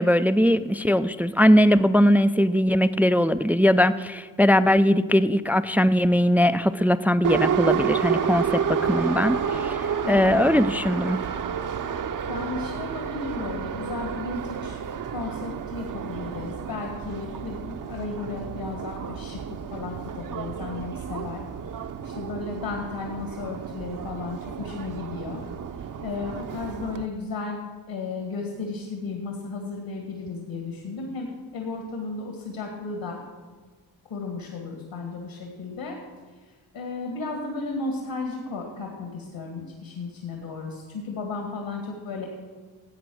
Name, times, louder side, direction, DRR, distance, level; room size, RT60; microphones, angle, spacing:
voice 1, 0.0-9.8 10.1-11.2, equal, 5° right, 12 dB, 0.3 m, -20 dB
Subway metro underground, 7.2-27.1, right 7 dB, 40° right, 0.7 m, -30 dB
voice 2, 10.0-10.3 12.3-14.8 15.1-21.4 22.0-25.4 25.8-27.6 27.9-33.2 34.1-36.0 36.4-42.3, left 3 dB, 70° left, 1 dB, 2.3 m, -34 dB
12.5 x 8.2 x 6.4 m, 1.4 s
hypercardioid pair, 45°, 48 cm